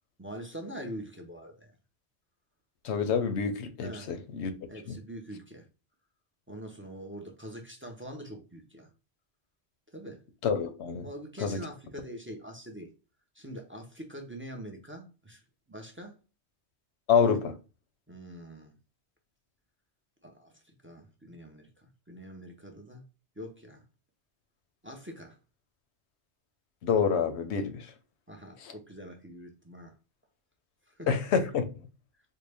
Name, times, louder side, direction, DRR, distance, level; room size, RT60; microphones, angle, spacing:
voice 1, 0.2-1.7 3.8-4.2 4.7-5.7 6.5-8.9 9.9-10.2 11.0-12.9 13.3-15.4 15.7-16.2 17.1-17.4 18.1-18.7 20.2-23.0 23.4-23.8 24.8-25.4 28.3-29.9 30.9-31.1, equal, 20° right, 0.4 m, -44 dB
voice 2, 2.8-4.5 4.9-5.0 10.4-11.1 11.4-11.6 17.1-17.4 26.8-27.9 31.1-31.6, left 6 dB, 85° left, 0.9 m, -27 dB
3.8 x 2.1 x 3.3 m
omnidirectional pair, 1.1 m